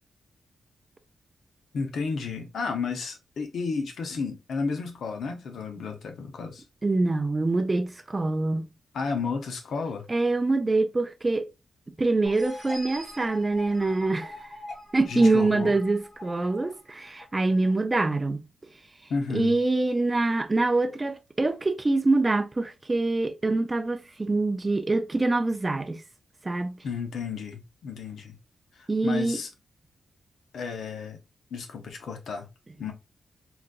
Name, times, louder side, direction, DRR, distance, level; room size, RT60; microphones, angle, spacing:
voice 1, 1.7-6.6 8.9-10.1 15.1-15.7 19.1-19.6 26.8-28.4 28.7-29.5 30.5-31.2 31.5-32.5 32.8-32.9, left 4 dB, 75° left, 0.7 m, -32 dB
voice 2, 6.8-8.7 10.1-11.5 12.0-14.5 14.9-18.4 19.3-26.0 26.4-26.8 28.9-29.4, right 2 dB, 20° right, 0.3 m, -25 dB
sound 1, 12.2-17.7, left 1 dB, 25° left, 1.4 m, -43 dB
3.9 x 2.3 x 2.3 m
wide cardioid pair, 130°, 0 cm